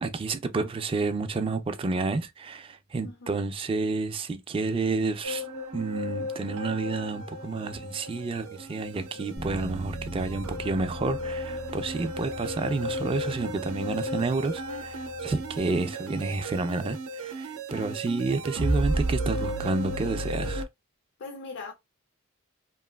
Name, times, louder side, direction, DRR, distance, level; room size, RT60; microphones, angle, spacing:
voice 1, 0.0-5.4 5.7-20.7, right 3 dB, 25° right, 0.3 m, -30 dB
voice 2, 3.0-3.3 17.7-18.0 21.2-21.7, left 3 dB, 55° left, 0.4 m, -41 dB
sound 1, 5.2-20.7, right 1 dB, 85° right, 0.5 m, -34 dB
Bass guitar, 9.4-15.6, equal, 75° left, 0.9 m, -41 dB
2.9 x 2.4 x 2.2 m
head